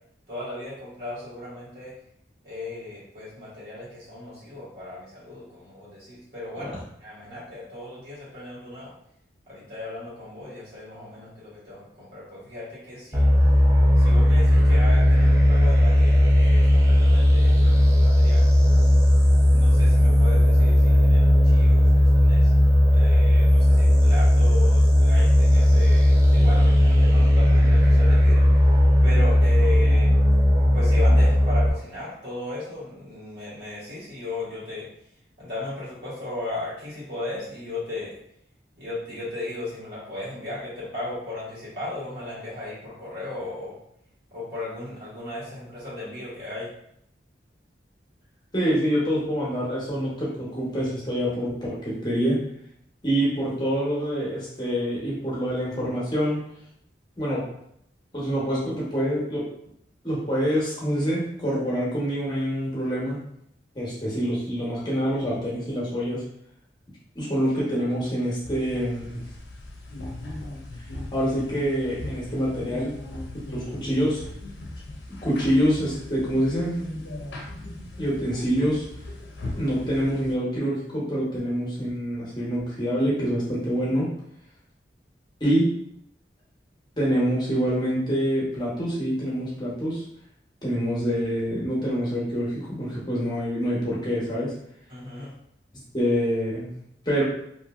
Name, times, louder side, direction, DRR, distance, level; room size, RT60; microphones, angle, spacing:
voice 1, 0.3-1.9 2.4-8.9 9.5-13.3 14.0-18.4 19.5-22.5 22.9-30.2 30.7-34.9 35.4-38.1 38.8-43.8 44.3-46.7 94.9-95.3, left 2 dB, 70° right, -9 dB, 1.5 m, -36 dB
sound 1, 13.1-31.7, left 1 dB, 15° right, 0.4 m, -17 dB
voice 2, 48.5-52.4 53.0-56.4 57.2-57.5 58.1-59.4 60.0-63.2 63.7-66.2 67.1-69.2 71.1-72.9 73.5-74.2 75.2-76.8 78.0-78.8 79.6-84.1 85.4-85.7 87.0-90.0 90.6-94.5 95.9-96.7 97.1-97.2, equal, 25° left, -7 dB, 0.8 m, -26 dB
sound 2, 68.4-80.4, left 1 dB, 75° left, 0.5 m, -38 dB
2.7 x 2.6 x 2.3 m, 0.72 s
head